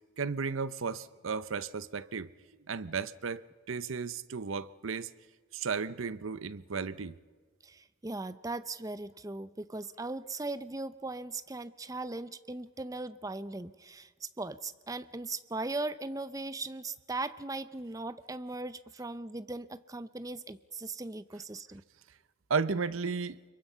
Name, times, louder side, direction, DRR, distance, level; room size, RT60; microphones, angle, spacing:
voice 1, 0.2-2.3 2.7-3.4 3.7-5.1 5.5-7.1 22.5-23.4, right 5 dB, 80° right, 0.7 m, -34 dB
voice 2, 7.6-21.8, right 2 dB, 15° right, 0.6 m, -39 dB
25.0 x 23.0 x 5.6 m
head